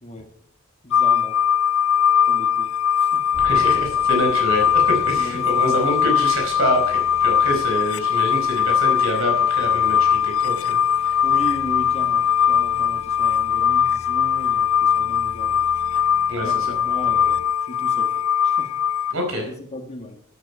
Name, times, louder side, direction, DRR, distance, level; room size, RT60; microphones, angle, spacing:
voice 1, 0.0-0.3 0.8-1.4 2.2-3.3 5.1-5.8 11.2-15.6 16.4-18.8 19.4-20.2, left 1 dB, 30° left, 4 dB, 1.5 m, -36 dB
sound 1, 0.9-19.1, left 8 dB, 70° left, 0.4 m, -20 dB
sound 2, 3.3-17.5, right 1 dB, 30° right, 1.3 m, -43 dB
voice 2, 3.4-11.1 16.3-16.5 19.1-19.5, equal, 65° right, 2 dB, 4.6 m, -26 dB
12.5 x 9.4 x 4.7 m, 0.65 s
head